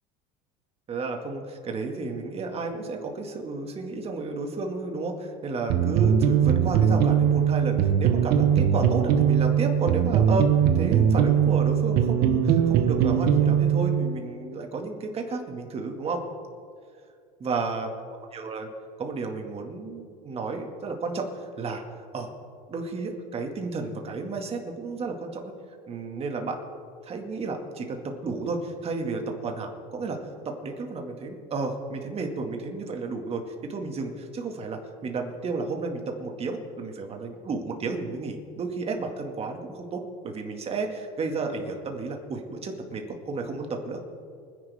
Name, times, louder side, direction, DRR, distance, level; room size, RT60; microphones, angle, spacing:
voice 1, 0.9-16.2 17.4-17.9 18.3-18.7 19.0-21.8 22.1-22.3 22.7-25.5 25.9-26.6 27.0-30.2 30.4-44.0, right 3 dB, 35° right, 3 dB, 2.2 m, -32 dB
sound 1, 5.7-14.1, right 8 dB, 60° right, 1.2 m, -21 dB
25.5 x 10.5 x 3.7 m, 2.3 s
supercardioid pair, 115°, 19 cm